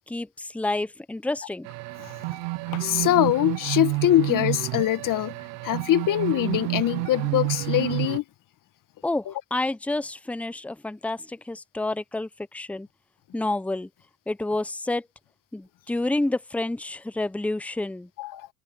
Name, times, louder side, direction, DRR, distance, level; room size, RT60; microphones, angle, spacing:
voice 1, 0.0-1.7 9.0-12.9 13.3-13.9 14.3-15.1 15.5-18.1, left 2 dB, 5° left, 0.8 m, -29 dB
sound 1, 1.6-8.2, right 24 dB, 85° right, 1.2 m, -30 dB
voice 2, 2.7-5.3 5.6-8.2 18.2-18.5, left 14 dB, 55° left, 1.9 m, -23 dB
supercardioid pair, 95°, 39 cm